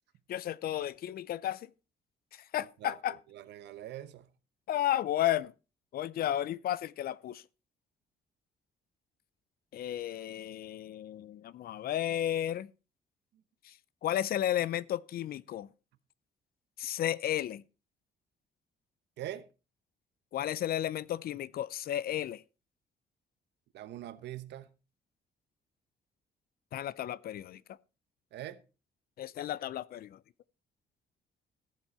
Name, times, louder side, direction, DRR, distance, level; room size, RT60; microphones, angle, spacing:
voice 1, 0.3-1.7 2.3-3.2 4.7-5.5 5.9-7.4 9.7-12.7 13.6-13.7 14.0-15.7 16.8-17.6 20.3-22.4 26.7-27.6 29.2-30.2, left 12 dB, 60° left, 0.5 m, -33 dB
voice 2, 2.6-4.3 13.3-13.4 19.2-19.5 23.7-24.7 28.3-28.6, right 12 dB, 85° right, 1.0 m, -43 dB
14.5 x 7.4 x 4.2 m
cardioid pair, 140°, 17 cm